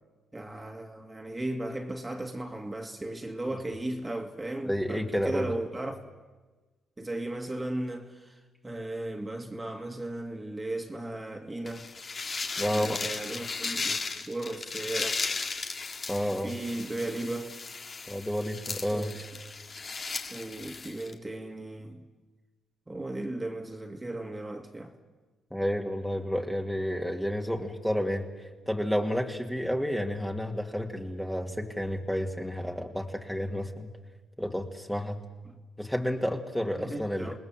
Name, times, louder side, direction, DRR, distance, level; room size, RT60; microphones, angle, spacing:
voice 1, 0.3-6.1 7.0-8.4 8.6-11.9 12.6-15.1 16.3-17.5 18.9-19.2 20.3-22.0 22.9-24.9 35.4-35.5 36.8-37.4, right 1 dB, 15° right, 2.3 m, -36 dB
voice 2, 4.6-5.5 12.6-13.0 16.1-16.6 18.1-19.1 25.5-28.3 28.7-33.9 34.4-35.2 35.8-37.4, equal, ahead, 2.3 m, -30 dB
sound 1, 11.7-21.1, left 4 dB, 40° left, 2.1 m, -36 dB
28.0 x 19.5 x 7.6 m
cardioid pair, 90°, 0 cm